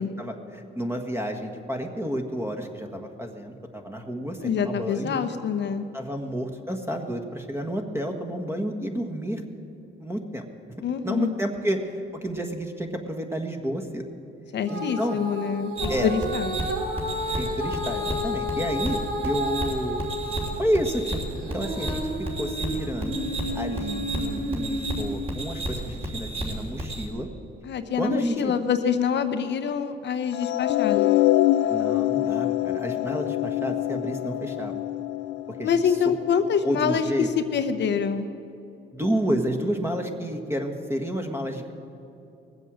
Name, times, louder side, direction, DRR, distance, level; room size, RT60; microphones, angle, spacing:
voice 1, 0.0-5.2 5.9-9.4 10.0-10.4 11.0-14.0 14.7-15.2 15.9-16.1 17.4-20.0 20.6-23.2 23.5-27.3 28.0-28.5 31.7-34.7 35.5-36.0 36.6-37.3 38.9-41.7, equal, 10° right, 4 dB, 1.5 m, -30 dB
voice 2, 4.4-5.8 10.8-11.3 14.5-16.6 27.6-31.1 35.6-38.3, left 7 dB, 65° left, 8 dB, 0.8 m, -26 dB
Female singing, 14.7-20.6 21.0-25.3 25.9-26.0, equal, 65° right, 3.7 m, -32 dB
sound 1, 15.8-27.1, right 1 dB, 30° right, 3.2 m, -32 dB
sound 2, 30.3-36.6, left 14 dB, 90° left, 0.5 m, -25 dB
19.0 x 8.0 x 7.6 m, 2.8 s
cardioid pair, 90°, 20 cm